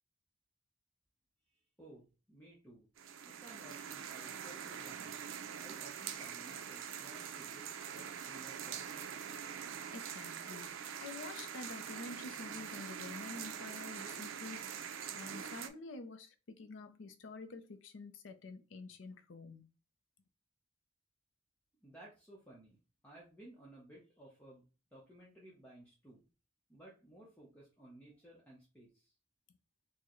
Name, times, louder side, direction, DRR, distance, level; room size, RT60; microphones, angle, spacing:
voice 1, 1.5-2.9 3.2-5.2 5.6-8.9 21.8-22.8 23.0-24.6 24.9-26.3 26.7-29.1, right 1 dB, 10° left, 0.8 m, -57 dB
sound 1, 3.0-15.7, right 8 dB, 90° right, 0.5 m, -44 dB
voice 2, 9.9-14.7 15.1-19.7 29.5-29.6, left 3 dB, 75° left, 0.5 m, -48 dB
4.5 x 2.1 x 3.0 m
head